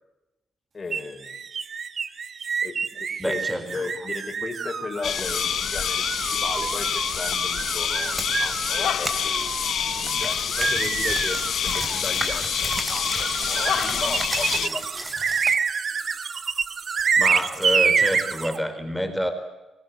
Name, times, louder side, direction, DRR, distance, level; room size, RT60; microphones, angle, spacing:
voice 1, 0.7-1.4 2.6-9.7 10.0-15.1, left 4 dB, 30° left, 5 dB, 5.0 m, -36 dB
sound 1, 0.9-18.6, right 6 dB, 50° right, 1.4 m, -28 dB
voice 2, 3.2-3.9 17.2-19.3, equal, ahead, 8 dB, 4.3 m, -28 dB
sound 2, 5.0-14.7, left 9 dB, 70° left, 0.9 m, -27 dB
sound 3, 7.8-8.3 9.1-15.6, right 2 dB, 20° right, 3.7 m, -34 dB
26.0 x 20.5 x 9.6 m, 1.0 s
cardioid pair, 110°, 0 cm